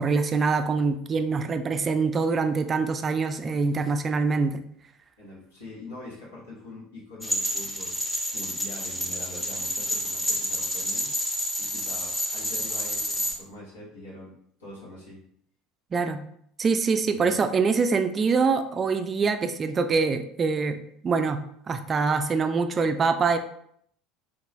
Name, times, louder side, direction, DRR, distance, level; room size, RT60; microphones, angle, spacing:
voice 1, 0.0-4.6 15.9-16.2 16.6-23.4, right 4 dB, 30° right, 9 dB, 0.3 m, -24 dB
voice 2, 5.2-7.9 8.3-11.1 11.6-15.2 17.0-17.4, left 1 dB, 75° left, -7 dB, 1.1 m, -43 dB
sound 1, 7.2-13.3, left 1 dB, 10° left, 0.8 m, -29 dB
3.7 x 3.0 x 2.5 m, 0.69 s
figure-of-eight pair, 65°, 0 cm